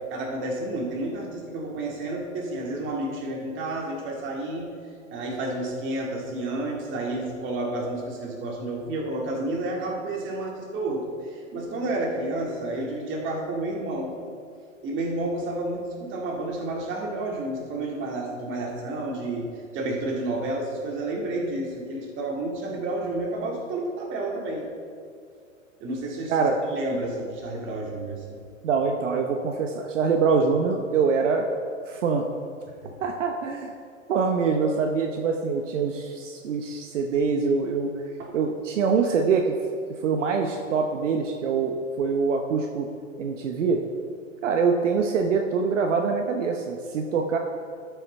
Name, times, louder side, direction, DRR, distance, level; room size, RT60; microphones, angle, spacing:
voice 1, 0.1-4.7 5.1-14.1 14.8-19.5 19.7-24.7 25.8-28.4 32.8-32.9 38.2-38.4, right 2 dB, 30° right, -1 dB, 2.0 m, -30 dB
voice 2, 28.6-31.5 31.9-32.2 33.0-33.7 34.1-37.9 38.3-39.5 40.0-42.9 43.2-43.8 44.4-47.4, right 5 dB, 65° right, 3 dB, 0.9 m, -24 dB
13.0 x 5.7 x 4.2 m, 2.3 s
hypercardioid pair, 110°, 39 cm